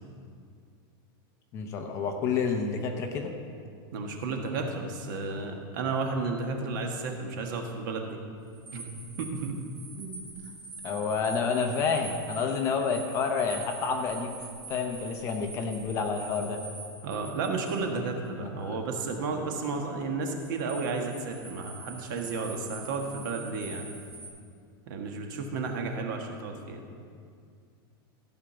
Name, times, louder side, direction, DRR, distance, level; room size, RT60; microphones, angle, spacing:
voice 1, 1.5-3.3 10.8-14.4 14.7-16.6 18.4-18.8, left 5 dB, 25° left, 4 dB, 0.7 m, -29 dB
voice 2, 3.9-8.2 8.7-9.6 10.0-10.3 17.0-23.9 24.9-26.8, right 4 dB, 55° right, 3 dB, 1.4 m, -33 dB
sound 1, 8.5-17.8 20.3-24.3, right 2 dB, 20° right, 2.9 m, -44 dB
14.5 x 5.1 x 6.9 m, 2.2 s
supercardioid pair, 180°, 12 cm